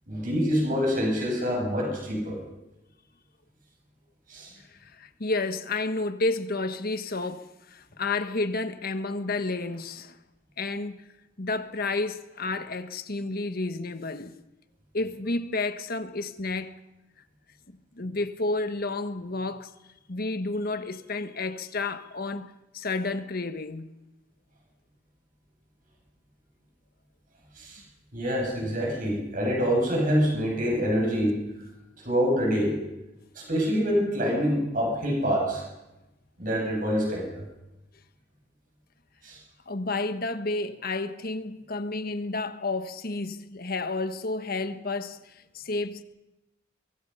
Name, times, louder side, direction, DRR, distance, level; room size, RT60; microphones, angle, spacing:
voice 1, 0.1-2.4 4.3-4.5 27.6-27.8 28.1-31.4 32.0-32.7 33.3-35.6 36.4-37.4 39.2-39.4, equal, 45° right, 7.4 m, -26 dB
voice 2, 4.8-10.1 10.6-11.0 11.4-14.3 14.9-16.7 18.0-19.7 20.1-23.9 39.7-46.0, left 3 dB, 50° left, 1.3 m, -31 dB
23.5 x 23.5 x 5.7 m
head